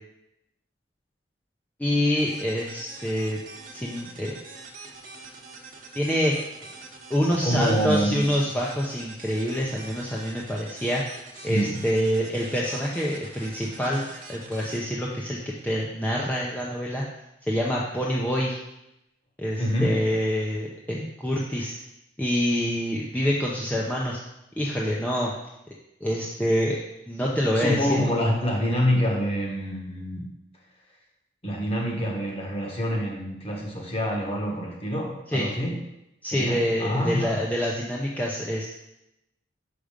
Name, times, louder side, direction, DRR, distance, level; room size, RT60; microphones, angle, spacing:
voice 1, 1.8-3.4 3.7-4.4 5.9-6.4 7.1-11.0 11.4-17.0 17.5-18.6 19.4-21.7 22.2-24.2 24.6-25.3 26.0-26.8 27.1-28.0 35.3-35.5 36.2-38.7, equal, 10° left, -4 dB, 0.6 m, -26 dB
sound 1, 2.2-15.8, right 3 dB, 45° right, 1.1 m, -45 dB
voice 2, 7.3-8.2 11.5-11.8 19.6-19.9 27.5-30.3 31.4-35.8 36.3-37.4, equal, 30° left, 0 dB, 1.4 m, -26 dB
6.0 x 5.2 x 5.1 m, 0.87 s
head